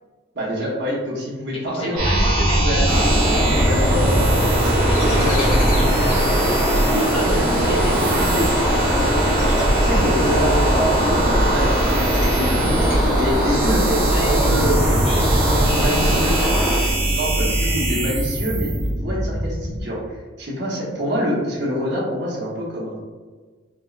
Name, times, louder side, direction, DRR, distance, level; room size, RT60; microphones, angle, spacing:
voice 1, 0.3-4.3 4.6-5.5 6.9-8.5 9.8-16.4 17.1-18.7 19.0-23.0, equal, 55° right, -6 dB, 1.0 m, -26 dB
voice 2, 1.6-3.1 4.9-6.3 7.0-8.4 8.7-9.4 14.0-14.5 15.0-17.2, equal, 30° left, -4 dB, 0.7 m, -33 dB
sound 1, 1.9-19.8, right 1 dB, 80° right, 0.9 m, -21 dB
sound 2, 2.9-16.8, equal, 10° right, 0.4 m, -23 dB
sound 3, 4.9-16.9, equal, 85° left, 1.0 m, -33 dB
4.5 x 2.0 x 2.3 m, 1.4 s
head